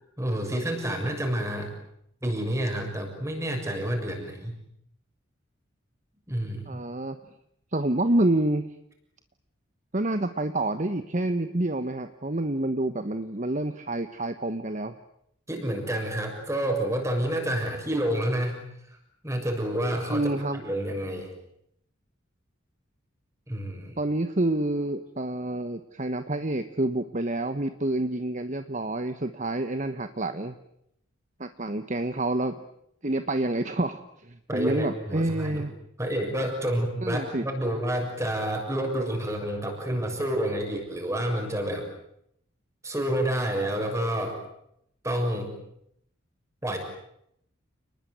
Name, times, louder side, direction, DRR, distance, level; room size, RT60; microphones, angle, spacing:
voice 1, 0.2-1.7 2.2-4.5 6.3-6.8 15.5-18.6 18.9-19.0 19.2-21.3 23.5-24.0 34.5-35.6 36.0-41.9 42.8-44.4 45.0-45.6 46.6-46.8, right 1 dB, 15° right, 3 dB, 6.7 m, -29 dB
voice 2, 6.7-7.2 7.7-8.7 9.9-14.9 20.1-20.6 24.0-30.5 31.4-32.5 33.0-35.7 37.0-37.4, right 1 dB, 35° right, 9 dB, 1.2 m, -28 dB
29.5 x 20.5 x 9.4 m, 0.76 s
head